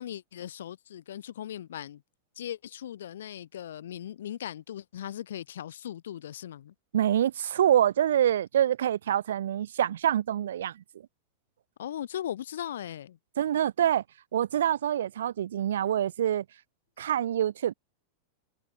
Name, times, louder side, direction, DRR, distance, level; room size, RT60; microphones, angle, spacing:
voice 1, 0.0-2.0 2.4-6.7 11.8-13.2, left 11 dB, 60° left, 5.0 m, -38 dB
voice 2, 6.9-10.7 13.4-14.0 14.3-16.4 17.0-17.7, right 10 dB, 60° right, 0.6 m, -26 dB
figure-of-eight pair, 90°, 0 cm